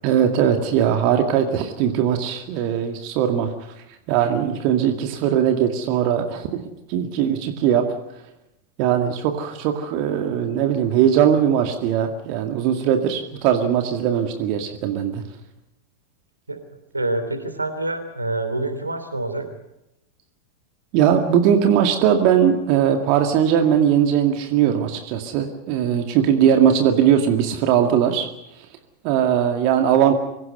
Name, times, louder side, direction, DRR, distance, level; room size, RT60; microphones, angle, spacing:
voice 1, 0.0-6.5 6.9-7.9 8.8-15.2 20.9-28.3 29.0-30.2, right 9 dB, 45° right, 5 dB, 2.1 m, -20 dB
voice 2, 16.9-19.5, right 2 dB, 80° right, 9 dB, 3.1 m, -26 dB
24.5 x 17.0 x 7.8 m, 0.90 s
figure-of-eight pair, 90°, 0 cm